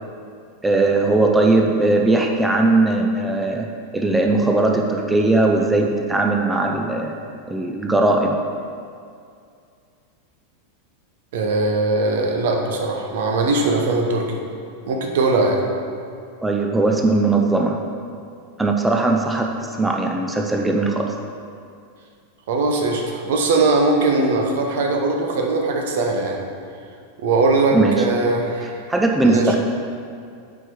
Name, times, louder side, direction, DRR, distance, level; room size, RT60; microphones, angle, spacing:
voice 1, 0.6-3.7 3.9-7.1 7.5-8.3 16.4-17.8 18.6-19.5 19.8-21.1 27.7-27.9 28.9-29.6, right 2 dB, 10° right, 2 dB, 0.6 m, -19 dB
voice 2, 11.3-14.4 14.9-15.6 22.5-26.4 27.2-28.8 29.2-29.6, right 3 dB, 55° right, 2 dB, 0.9 m, -20 dB
7.8 x 4.6 x 4.5 m, 2.3 s
figure-of-eight pair, 90°, 0 cm